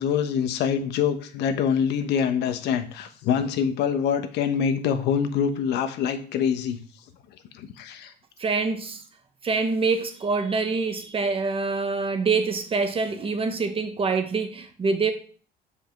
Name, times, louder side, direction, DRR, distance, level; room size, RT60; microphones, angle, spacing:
voice 1, 0.0-6.8 7.5-8.1, left 7 dB, 85° left, 1.1 m, -25 dB
voice 2, 8.4-9.0 9.4-15.1, right 4 dB, 35° right, 1.3 m, -25 dB
7.3 x 5.1 x 5.9 m
cardioid pair, 110°, 17 cm